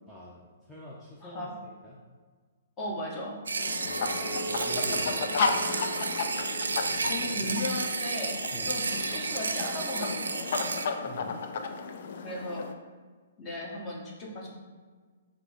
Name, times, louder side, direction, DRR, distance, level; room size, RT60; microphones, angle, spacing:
voice 1, 0.1-2.0 3.8-5.6 7.2-7.6 8.5-8.8 11.1-11.4, equal, 5° left, -7 dB, 0.6 m, -46 dB
voice 2, 1.2-1.5 2.8-3.4 7.0-10.6 12.2-12.7 13.4-14.6, left 1 dB, 25° left, -3 dB, 1.1 m, -36 dB
sound 1, 3.5-10.9, right 4 dB, 75° right, 0.3 m, -32 dB
sound 2, 3.6-12.7, left 4 dB, 55° left, 0.4 m, -34 dB
Chink clink, 3.9-8.2 8.6-9.0, right 2 dB, 85° left, 0.8 m, -42 dB
5.8 x 2.0 x 3.6 m, 1.5 s
figure-of-eight pair, 120°, 0 cm